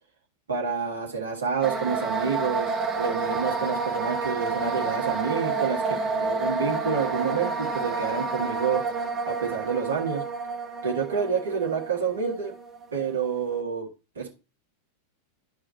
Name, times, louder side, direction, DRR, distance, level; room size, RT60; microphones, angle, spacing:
voice 1, 0.5-8.8 9.3-10.2 10.8-12.5 12.9-13.9 14.2-14.4, right 6 dB, 65° right, 0 dB, 1.8 m, -28 dB
sound 1, 1.6-13.5, right 4 dB, 25° right, 1.7 m, -29 dB
12.0 x 4.8 x 2.9 m, 0.30 s
figure-of-eight pair, 90°, 0 cm